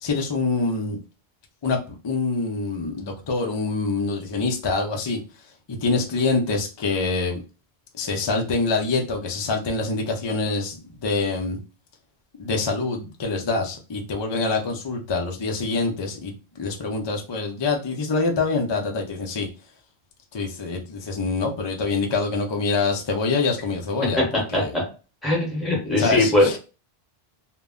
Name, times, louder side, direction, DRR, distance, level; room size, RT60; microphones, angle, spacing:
voice 1, 0.0-1.0 1.6-5.2 5.7-7.4 8.0-11.6 12.4-19.5 20.3-24.7 25.9-26.6, left 3 dB, 45° left, 3 dB, 0.3 m, -25 dB
voice 2, 24.5-24.8 25.2-26.5, left 1 dB, ahead, -2 dB, 0.9 m, -20 dB
2.1 x 2.0 x 3.5 m, 0.33 s
omnidirectional pair, 1.0 m